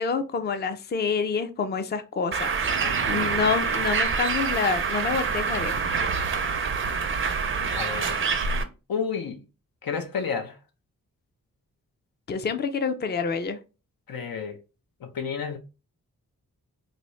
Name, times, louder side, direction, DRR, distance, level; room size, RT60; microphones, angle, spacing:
voice 1, 0.0-2.5 3.1-5.9 12.3-13.6, left 5 dB, 30° left, 0.4 m, -27 dB
Bird, 2.3-8.6, right 5 dB, 40° right, 0.5 m, -26 dB
sound 1, 2.5-7.9, right 5 dB, 90° right, 0.5 m, -39 dB
voice 2, 2.8-3.2 7.6-8.2 8.5-9.4 9.8-10.6 14.1-14.6 15.0-15.6, left 6 dB, 85° left, 0.7 m, -32 dB
4.1 x 2.0 x 3.1 m
wide cardioid pair, 100°, 35 cm